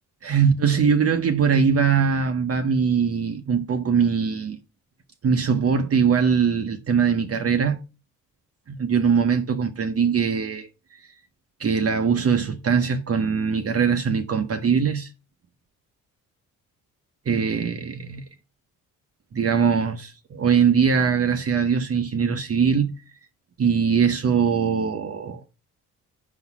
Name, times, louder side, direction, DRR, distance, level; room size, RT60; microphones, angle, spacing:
voice 1, 0.2-4.6 5.2-7.8 8.7-10.7 11.6-15.1 17.3-18.2 19.3-22.9 23.6-25.4, right 6 dB, 40° right, 0.8 m, -21 dB
5.3 x 4.0 x 5.9 m
supercardioid pair, 65°, 35 cm